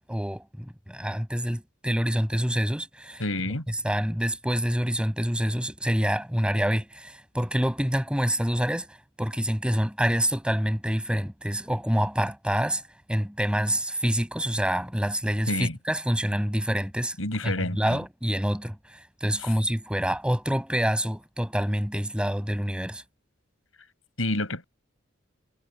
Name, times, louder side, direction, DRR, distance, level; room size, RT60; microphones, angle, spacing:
voice 1, 0.1-3.2 3.7-12.8 13.1-17.1 17.4-23.0, equal, 5° right, 6.8 m, -27 dB
voice 2, 3.2-3.7 15.5-15.8 17.2-18.0 23.8-23.9 24.2-24.6, left 1 dB, 90° left, 6.7 m, -29 dB
head